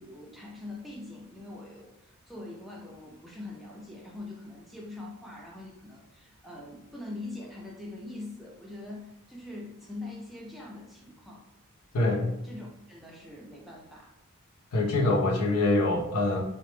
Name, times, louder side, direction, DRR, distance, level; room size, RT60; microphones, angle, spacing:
voice 1, 0.0-11.4 11.9-14.1, left 2 dB, ahead, -3 dB, 0.3 m, -43 dB
voice 2, 14.7-16.4, left 2 dB, 80° left, -2 dB, 0.5 m, -24 dB
2.0 x 2.0 x 3.0 m, 0.85 s
head